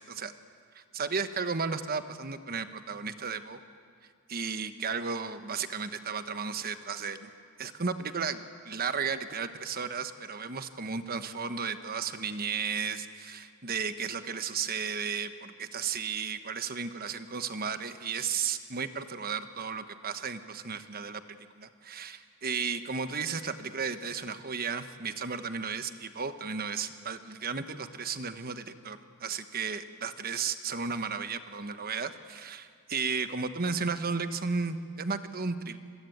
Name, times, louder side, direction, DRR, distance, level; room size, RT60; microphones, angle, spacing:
voice 1, 0.7-3.6 4.3-7.3 7.6-35.8, right 5 dB, 45° right, 10 dB, 1.2 m, -34 dB
26.0 x 22.5 x 9.3 m, 2.1 s
head